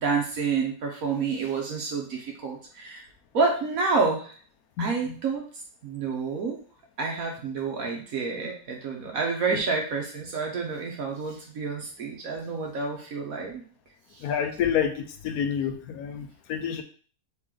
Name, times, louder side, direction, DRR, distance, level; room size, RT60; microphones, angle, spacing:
voice 1, 0.0-3.0 3.3-4.4 4.8-5.4 5.8-6.6 7.0-13.6, right 4 dB, 60° right, 0 dB, 1.0 m, -28 dB
voice 2, 4.8-5.2 9.5-9.6 14.2-16.8, left 8 dB, 65° left, 6 dB, 1.0 m, -29 dB
4.1 x 3.0 x 3.7 m, 0.42 s
omnidirectional pair, 1.9 m